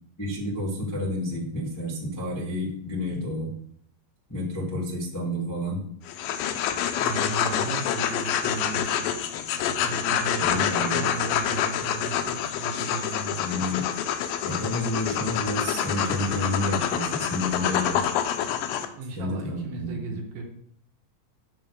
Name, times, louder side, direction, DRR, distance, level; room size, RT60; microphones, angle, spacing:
voice 1, 0.2-3.5 4.3-5.8 10.4-11.0 13.3-13.9 14.4-18.0 19.1-20.2, left 1 dB, 15° left, -6 dB, 0.7 m, -30 dB
sound 1, 6.1-18.9, left 9 dB, 85° left, 2.0 m, -27 dB
voice 2, 6.9-13.4 19.0-20.4, right 5 dB, 70° right, 1 dB, 2.9 m, -36 dB
9.1 x 3.0 x 6.4 m, 0.65 s
omnidirectional pair, 4.6 m